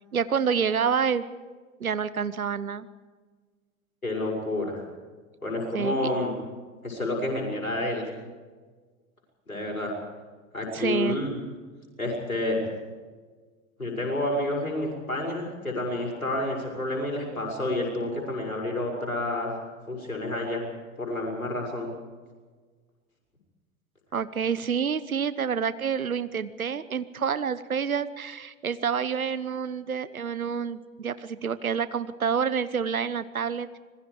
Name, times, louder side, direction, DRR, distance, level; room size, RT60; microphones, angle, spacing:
voice 1, 0.1-1.2 1.8-2.9 5.7-6.1 10.7-11.2 24.1-33.7, right 7 dB, 80° right, 15 dB, 1.1 m, -28 dB
voice 2, 4.0-4.8 5.4-6.3 6.8-8.1 9.5-9.9 10.5-11.4 12.0-12.6 13.8-19.6 19.9-20.6 21.0-21.9, left 1 dB, 85° left, 0 dB, 6.5 m, -29 dB
26.0 x 21.0 x 4.9 m, 1.4 s
figure-of-eight pair, 85°, 42 cm